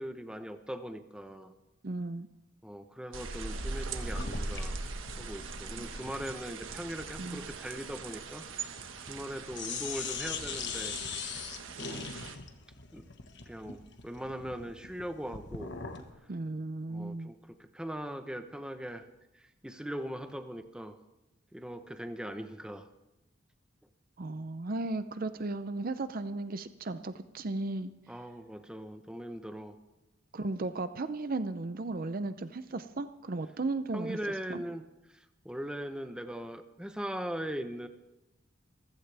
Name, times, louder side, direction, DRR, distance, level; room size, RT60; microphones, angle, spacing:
voice 1, 0.0-1.5 2.6-4.8 5.2-8.8 9.0-10.9 11.8-12.1 12.9-13.0 13.5-15.7 16.9-19.1 19.3-21.0 21.5-22.9 28.1-29.7 33.9-34.8 35.1-37.9, equal, 5° right, 7 dB, 0.9 m, -40 dB
voice 2, 1.8-2.3 5.8-5.9 7.2-7.4 16.3-17.3 24.2-27.9 30.3-34.2 34.5-34.6, right 2 dB, 45° right, 11 dB, 0.6 m, -35 dB
sound 1, 3.1-12.4, right 3 dB, 75° right, 1.4 m, -40 dB
sound 2, 4.1-9.3 9.5-16.1, left 6 dB, 60° left, 1.4 m, -41 dB
26.5 x 15.5 x 3.4 m, 0.98 s
head